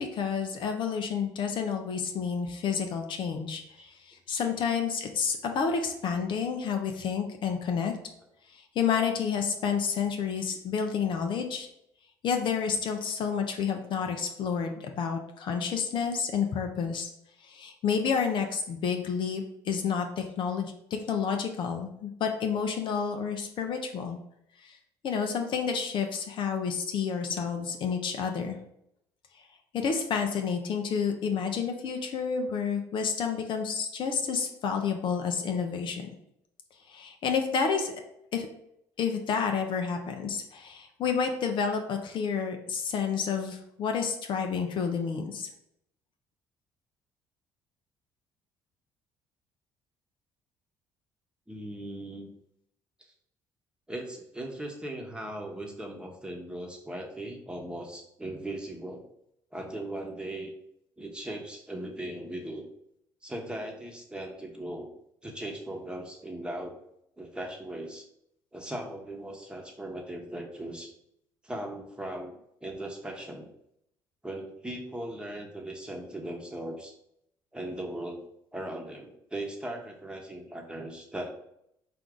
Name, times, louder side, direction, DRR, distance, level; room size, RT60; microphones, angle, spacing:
voice 1, 0.0-3.6 3.9-7.9 8.5-11.7 12.2-17.1 17.4-24.2 24.6-24.8 25.0-28.6 29.7-36.1 36.9-37.9 38.3-38.5 39.0-45.5, left 6 dB, 55° left, 4 dB, 0.6 m, -30 dB
voice 2, 51.5-52.3 53.9-59.0 59.5-60.5 61.0-62.7 63.2-64.9 65.2-66.7 67.2-68.0 68.5-70.9 71.4-72.3 72.6-73.5 74.2-76.9 77.5-78.2 78.5-81.3, right 1 dB, 10° right, 1 dB, 1.1 m, -38 dB
4.6 x 2.6 x 3.7 m, 0.76 s
hypercardioid pair, 60°, 10 cm